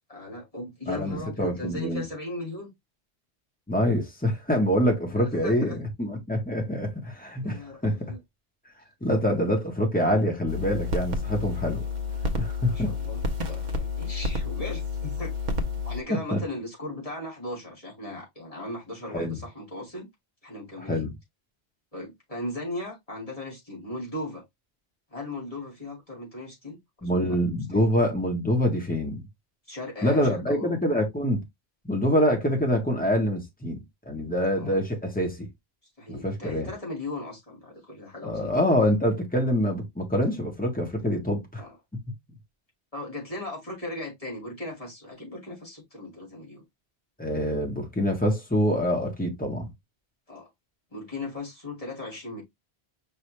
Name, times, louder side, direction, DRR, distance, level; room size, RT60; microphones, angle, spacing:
voice 1, 0.1-2.7 5.1-5.8 7.4-8.2 12.7-15.4 15.8-20.1 20.4-21.0 21.9-24.4 25.1-27.4 27.8-27.9 29.7-30.7 34.5-34.7 36.0-38.5 41.6-41.8 42.9-46.6 50.3-50.5 50.9-52.4, left 2 dB, 35° left, 2.5 m, -37 dB
voice 2, 0.9-2.0 3.7-8.1 9.0-11.8 12.4-12.9 16.3-16.4 19.1-19.4 20.8-21.1 27.0-29.2 30.0-31.4 31.9-35.5 36.1-36.7 38.2-41.6 47.2-49.7, equal, 10° left, 1.5 m, -25 dB
sound 1, 10.5-16.0, left 3 dB, 50° right, 0.8 m, -30 dB
5.4 x 2.7 x 3.2 m
omnidirectional pair, 1.1 m